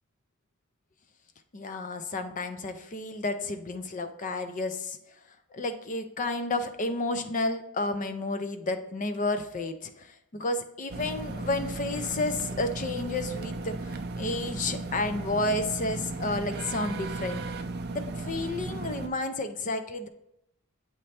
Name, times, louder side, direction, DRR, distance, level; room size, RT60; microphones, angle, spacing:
voice 1, 1.5-5.0 5.5-17.4 17.9-20.1, left 2 dB, 35° left, 8 dB, 0.5 m, -31 dB
sound 1, 10.9-19.1, right 2 dB, 45° right, 0.5 m, -35 dB
7.9 x 3.2 x 4.2 m, 0.80 s
head